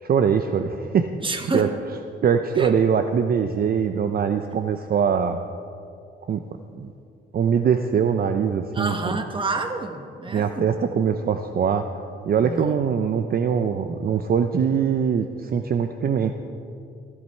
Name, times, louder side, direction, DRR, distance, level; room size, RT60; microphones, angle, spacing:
voice 1, 0.0-1.1 1.5-1.7 2.2-5.4 6.3-6.4 6.8-6.9 7.3-9.1 10.3-11.9 12.3-16.3, right 7 dB, 50° right, 8 dB, 0.7 m, -22 dB
voice 2, 1.2-1.7 2.6-2.7 8.7-10.7 12.4-12.8, right 3 dB, 25° right, 6 dB, 1.6 m, -28 dB
15.5 x 14.5 x 4.5 m, 2.5 s
cardioid pair, 90°, 20 cm